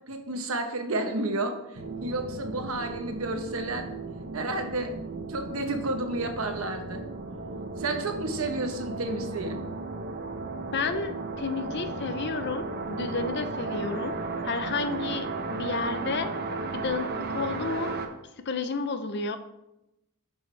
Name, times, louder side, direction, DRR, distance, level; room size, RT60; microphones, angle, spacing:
voice 1, 0.1-1.6 2.0-3.9 4.3-4.9 5.3-7.0 7.8-9.6, right 2 dB, 75° right, 5 dB, 1.1 m, -31 dB
sound 1, 1.7-18.1, right 3 dB, 45° right, 0.8 m, -35 dB
voice 2, 10.7-14.2 14.4-16.3 16.7-17.9 18.4-19.4, left 4 dB, 50° left, 9 dB, 0.6 m, -31 dB
11.0 x 5.5 x 3.3 m, 0.90 s
head